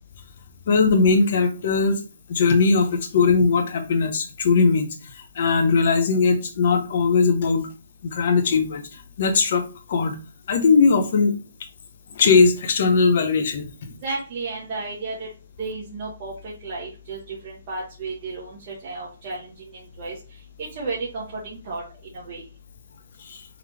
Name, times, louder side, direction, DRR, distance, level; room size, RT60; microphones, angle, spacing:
voice 1, 0.7-2.0 2.3-4.9 5.4-7.6 8.0-8.8 9.2-10.1 10.5-11.4 12.2-13.7, left 4 dB, 50° left, 6 dB, 0.9 m, -19 dB
voice 2, 14.0-15.3 15.6-22.4, right 3 dB, 35° right, -6 dB, 1.2 m, -33 dB
3.8 x 3.1 x 3.3 m, 0.34 s
hypercardioid pair, 160°, 0 cm